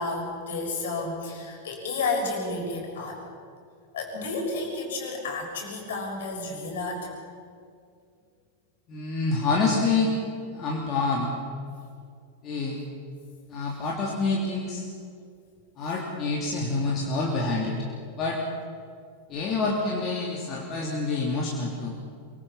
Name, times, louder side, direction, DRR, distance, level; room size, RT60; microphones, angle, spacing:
voice 1, 0.0-3.2 3.9-7.1, left 3 dB, 60° left, 1 dB, 6.5 m, -31 dB
voice 2, 8.9-10.1 10.5-11.3 12.4-12.8 13.5-14.8 15.8-17.7 18.2-18.4 19.3-22.0, left 3 dB, 30° left, -2 dB, 3.4 m, -27 dB
24.0 x 24.0 x 5.7 m, 2.3 s
figure-of-eight pair, 90°, 0 cm